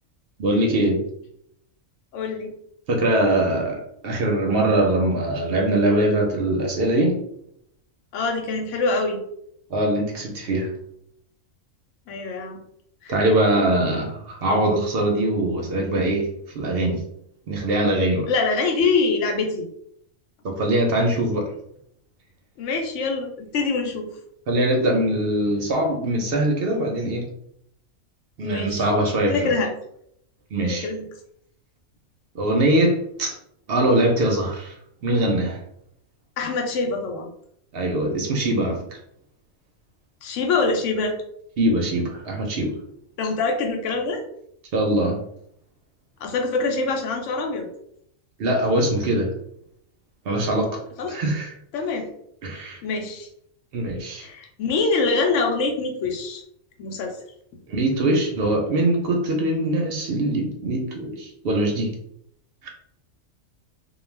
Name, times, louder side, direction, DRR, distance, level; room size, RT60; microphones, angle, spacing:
voice 1, 0.4-1.1 2.9-7.2 9.7-10.7 13.1-16.3 16.5-17.0 17.5-18.3 20.4-21.5 24.5-27.3 28.4-29.5 30.5-30.9 32.3-33.4 33.7-34.8 35.0-35.6 37.7-39.0 41.6-42.8 44.7-45.2 48.4-49.3 50.3-50.8 51.1-51.5 52.4-52.8 53.7-54.3 57.7-61.9, right 1 dB, 60° right, 2 dB, 0.6 m, -22 dB
voice 2, 2.1-2.5 8.1-9.2 12.1-12.6 13.0-13.2 18.3-19.7 22.6-24.1 28.4-28.9 29.3-29.7 30.6-31.0 36.4-37.3 40.2-41.2 43.2-44.2 46.2-47.7 51.0-51.2 51.7-52.1 52.5-53.3 54.2-56.4 56.8-57.2, left 3 dB, 70° left, 3 dB, 0.9 m, -25 dB
2.3 x 2.2 x 3.1 m, 0.72 s
omnidirectional pair, 1.4 m